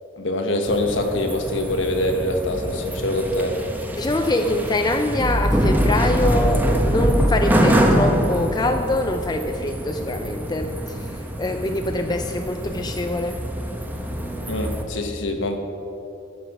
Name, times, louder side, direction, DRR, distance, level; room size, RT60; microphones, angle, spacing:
voice 1, 0.2-3.5 14.5-15.6, left 1 dB, 65° left, 4 dB, 1.3 m, -24 dB
sound 1, 0.7-14.8, equal, 10° right, 0.9 m, -24 dB
voice 2, 3.9-13.4, left 1 dB, 20° left, 5 dB, 0.5 m, -24 dB
15.0 x 7.1 x 6.0 m, 2.9 s
head